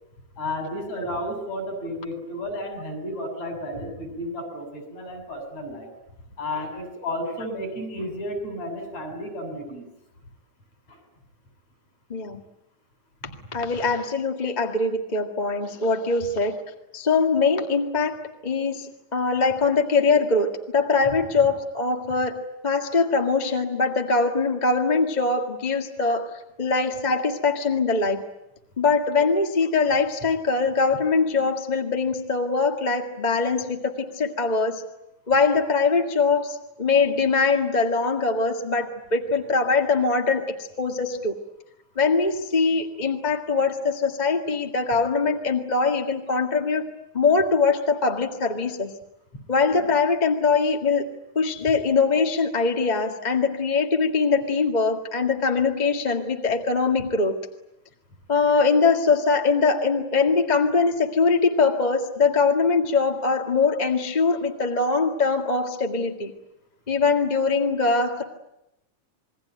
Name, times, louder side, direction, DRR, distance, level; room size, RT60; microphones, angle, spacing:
voice 1, 0.4-5.9 6.4-9.8 10.9-11.0, left 1 dB, 55° left, 4 dB, 8.0 m, -32 dB
voice 2, 12.1-12.4 13.5-16.6 16.9-22.4 22.6-26.3 26.6-28.2 28.8-34.8 35.3-41.3 41.9-46.9 47.1-48.9 49.5-51.0 51.3-57.3 58.3-66.3 66.9-68.2, left 4 dB, 20° left, 3 dB, 1.4 m, -22 dB
28.0 x 21.5 x 9.2 m, 0.87 s
omnidirectional pair, 3.6 m